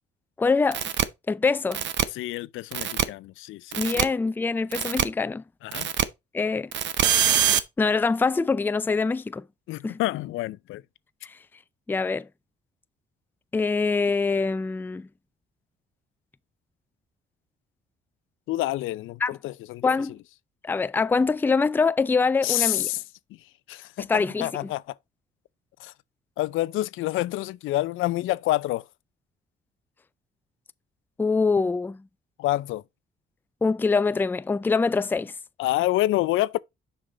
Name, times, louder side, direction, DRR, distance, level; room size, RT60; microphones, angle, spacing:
voice 1, 0.4-0.8 1.3-1.8 3.8-5.4 6.3-6.7 7.8-9.4 9.8-10.0 11.2-11.4 11.9-12.3 13.5-15.1 19.2-19.3 19.8-20.1 20.6-22.9 24.0-24.7 31.2-32.0 33.6-35.3, left 4 dB, 10° left, 0.3 m, -24 dB
sound 1, 0.7-1.0 1.7-2.0 2.7-3.0 3.7-4.0 4.7-5.0 5.7-6.0 6.7-7.6, right 10 dB, 65° right, 0.8 m, -23 dB
voice 2, 2.1-3.8 5.6-5.9 9.7-10.8 18.5-19.9 22.4-23.0 23.7-25.0 25.8-25.9 26.4-28.8 32.4-32.8 35.6-36.6, left 16 dB, 85° left, 0.5 m, -27 dB
6.7 x 5.3 x 3.8 m
cardioid pair, 90°, 20 cm